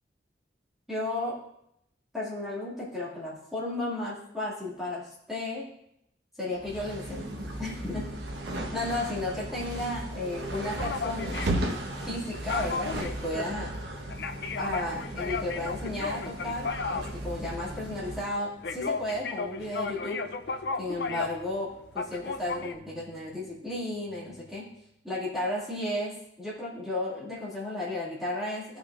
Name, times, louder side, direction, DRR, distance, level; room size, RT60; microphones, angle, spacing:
voice 1, 0.9-1.4 2.1-5.7 6.4-7.3 7.6-8.0 8.4-8.5 8.7-11.3 12.1-13.7 14.6-20.2 20.8-24.6 25.0-28.8, left 1 dB, ahead, -9 dB, 2.3 m, -34 dB
sound 1, 6.6-18.3, right 1 dB, 70° right, 1.1 m, -36 dB
sound 2, 10.5-21.5 21.8-22.7, left 4 dB, 65° left, 0.5 m, -35 dB
sound 3, 18.6-25.1, equal, 30° right, 1.3 m, -56 dB
16.5 x 5.7 x 2.5 m, 0.76 s
head